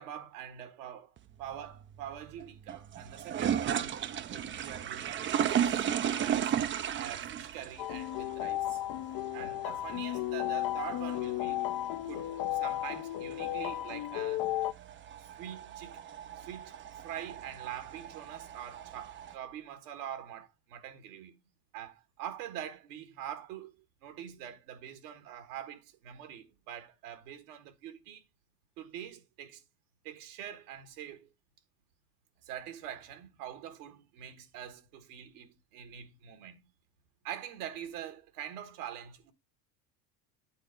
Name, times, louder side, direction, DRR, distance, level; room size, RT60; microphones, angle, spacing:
voice 1, 0.0-6.5 6.9-8.8 9.3-11.6 12.1-14.5 15.2-16.0 16.3-21.4 21.7-23.7 24.0-28.2 28.8-29.6 30.0-31.3 32.4-36.6 37.2-39.3, right 10 dB, 70° right, 1.6 m, -44 dB
sound 1, 1.2-19.4, right 9 dB, 25° right, 0.5 m, -36 dB
sound 2, 7.8-14.7, left 14 dB, 50° left, 0.6 m, -34 dB
9.1 x 4.0 x 5.1 m
hypercardioid pair, 85°, 48 cm